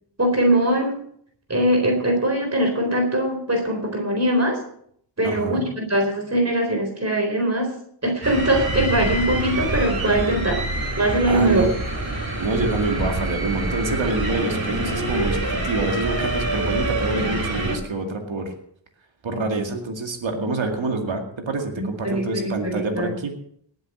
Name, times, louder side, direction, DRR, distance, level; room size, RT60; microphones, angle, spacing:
voice 1, 0.2-1.1 1.5-4.6 5.2-7.7 8.0-10.6 11.0-11.6 21.8-23.2, right 1 dB, 35° right, 2 dB, 4.1 m, -21 dB
voice 2, 5.2-5.6 11.3-11.7 12.4-18.5 19.2-23.3, right 2 dB, 90° right, 3 dB, 2.3 m, -26 dB
sound 1, 8.2-17.8, right 1 dB, 50° right, 3.6 m, -26 dB
19.0 x 7.9 x 6.3 m, 0.65 s
wide cardioid pair, 70°, 45 cm